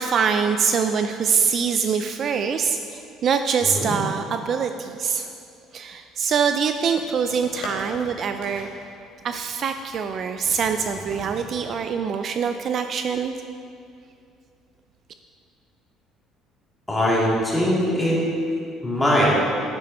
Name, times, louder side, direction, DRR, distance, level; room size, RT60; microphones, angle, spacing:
voice 1, 0.0-5.3 5.7-8.7 9.2-13.3, right 6 dB, 45° right, 7 dB, 0.4 m, -24 dB
voice 2, 3.6-4.0 16.9-18.2 18.8-19.3, equal, 10° left, -6 dB, 2.9 m, -21 dB
sound 1, 6.5-8.1 8.4-8.8 9.2-10.1 10.4-11.7, left 3 dB, 85° left, 2.3 m, -40 dB
10.5 x 9.3 x 4.2 m, 2.4 s
cardioid pair, 130°, 0 cm